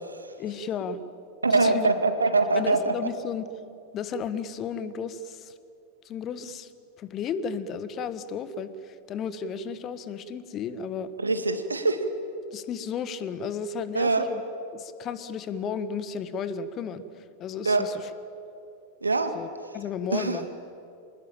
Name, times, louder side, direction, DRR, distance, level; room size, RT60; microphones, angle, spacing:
voice 1, 0.4-1.0 1.5-1.9 2.5-3.5 3.9-5.5 6.0-6.7 7.0-11.1 12.5-14.4 14.7-18.1 19.3-19.5 19.7-20.5, left 6 dB, 30° left, 13 dB, 1.4 m, -33 dB
voice 2, 1.4-2.9 11.2-12.1 13.9-14.3 17.7-17.8 19.0-19.3 20.1-20.4, right 3 dB, 80° right, 9 dB, 2.0 m, -23 dB
26.0 x 20.0 x 9.0 m, 2.6 s
figure-of-eight pair, 90°, 0 cm